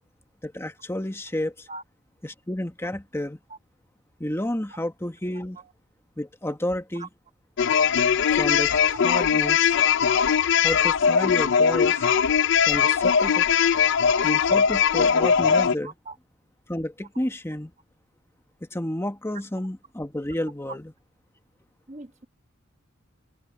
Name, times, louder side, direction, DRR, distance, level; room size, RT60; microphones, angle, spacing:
voice 1, 0.4-1.7 2.2-3.4 4.2-5.6 6.2-7.1 8.3-9.7 10.6-12.0 12.7-13.5 14.2-15.9 16.7-17.7 18.7-20.8, left 1 dB, 15° left, 1.3 m, -31 dB
sound 1, 7.6-15.7, left 7 dB, 65° left, 0.5 m, -20 dB
voice 2, 11.7-12.2 13.0-13.1 15.2-16.1 20.7-20.8 21.9-22.3, right 3 dB, 35° right, 1.5 m, -42 dB
head